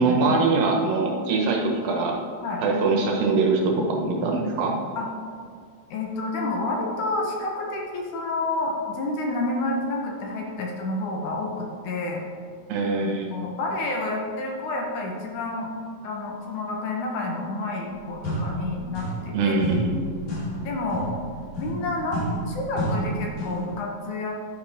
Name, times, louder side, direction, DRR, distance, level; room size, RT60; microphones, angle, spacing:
voice 1, 0.0-2.2 2.6-4.8 12.7-13.3 19.3-20.0, right 3 dB, 75° right, 0 dB, 3.0 m, -23 dB
voice 2, 4.0-4.3 5.0-5.1 5.9-12.2 13.0-15.7 16.0-19.6 20.6-21.1 21.6-24.4, left 2 dB, 65° left, 0 dB, 2.4 m, -29 dB
sound 1, 18.2-19.3 19.6-23.7, right 1 dB, 85° left, 4.3 m, -30 dB
11.0 x 9.8 x 3.6 m, 2.1 s
omnidirectional pair, 4.0 m